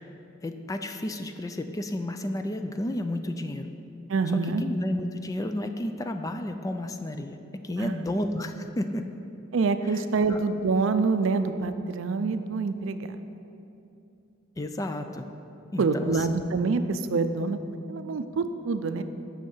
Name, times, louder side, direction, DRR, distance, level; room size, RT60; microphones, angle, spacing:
voice 1, 0.4-3.7 4.3-7.4 7.6-9.1 9.8-10.0 10.3-10.4 14.6-15.3 15.7-16.3, left 1 dB, 15° left, 7 dB, 0.4 m, -32 dB
voice 2, 4.1-4.6 7.8-7.9 9.5-13.1 15.8-17.6 17.9-19.0, right 4 dB, 70° right, 10 dB, 0.4 m, -26 dB
6.4 x 6.4 x 7.1 m, 2.8 s
head